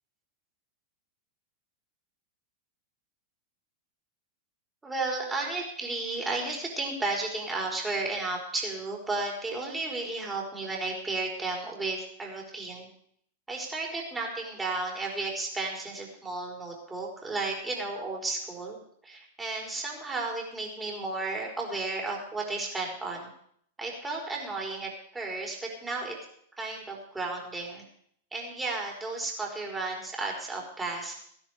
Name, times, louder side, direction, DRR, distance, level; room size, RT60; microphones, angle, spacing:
voice 1, 4.8-12.9 13.5-18.8 19.0-23.3 23.8-26.2 26.6-27.8 28.3-31.1, right 3 dB, 10° right, -1 dB, 4.5 m, -33 dB
16.0 x 10.5 x 5.0 m, 0.66 s
figure-of-eight pair, 95°, 0 cm